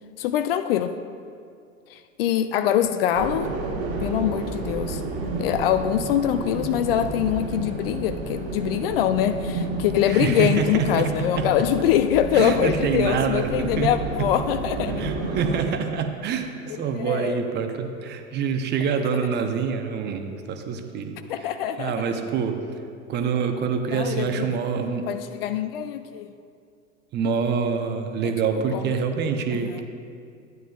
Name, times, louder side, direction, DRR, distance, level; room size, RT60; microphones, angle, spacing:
voice 1, 0.2-1.0 1.9-3.5 4.0-5.0 5.4-15.0 16.7-17.4 21.3-22.1 23.9-24.5 25.1-26.3 28.7-29.0 29.6-29.8, left 10 dB, 50° left, 10 dB, 0.4 m, -24 dB
sound 1, 3.1-15.6, right 2 dB, 45° right, 1.4 m, -31 dB
voice 2, 10.1-11.5 12.3-13.9 14.2-14.3 14.9-21.5 21.8-22.6 23.1-25.1 27.1-29.8, right 6 dB, 25° right, 6 dB, 0.7 m, -26 dB
12.5 x 9.3 x 2.3 m, 2.4 s
figure-of-eight pair, 90°, 40 cm